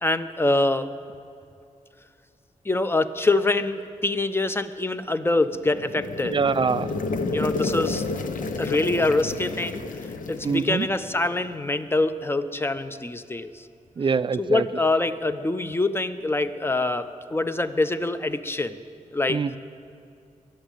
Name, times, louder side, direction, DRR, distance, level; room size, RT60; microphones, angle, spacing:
voice 1, 0.0-0.9 2.6-6.4 7.3-8.0 8.6-9.8 10.3-13.6 14.4-18.7 19.1-19.4, left 2 dB, 15° left, 11 dB, 0.7 m, -25 dB
sound 1, 5.4-11.5, left 3 dB, 75° left, 0.9 m, -31 dB
voice 2, 6.2-6.9 10.4-10.9 14.0-14.7 19.3-19.6, right 5 dB, 35° right, 15 dB, 0.4 m, -24 dB
21.5 x 7.3 x 9.1 m, 2.5 s
wide cardioid pair, 100°, 14 cm